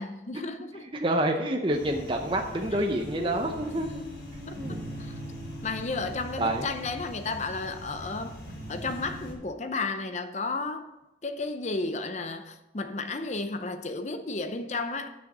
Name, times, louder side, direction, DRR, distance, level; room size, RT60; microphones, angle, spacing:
voice 1, 0.0-0.9 3.2-3.6 4.5-5.1 5.6-8.4 8.7-10.9 11.2-15.1, left 3 dB, 40° left, 0.6 m, -33 dB
voice 2, 0.9-4.0 4.4-4.8 6.4-6.6, right 1 dB, 30° right, 0.7 m, -28 dB
sound 1, 1.7-9.3, equal, 75° left, 3.2 m, -41 dB
8.9 x 6.4 x 6.0 m
head